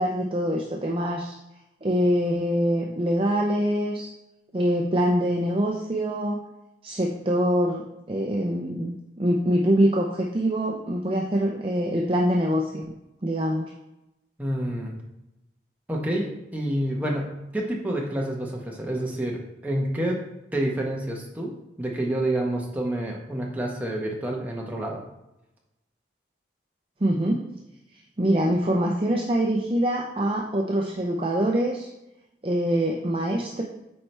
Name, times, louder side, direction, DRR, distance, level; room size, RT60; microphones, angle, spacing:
voice 1, 0.0-1.4 1.8-4.1 4.5-6.4 6.8-12.8 13.2-13.7 27.0-27.4 28.2-31.9 32.4-33.6, equal, 30° right, 0 dB, 0.5 m, -24 dB
voice 2, 14.4-14.9 15.9-20.2 20.5-21.5 21.8-25.0, right 1 dB, 10° right, -2 dB, 1.0 m, -28 dB
8.5 x 4.5 x 3.3 m, 0.92 s
head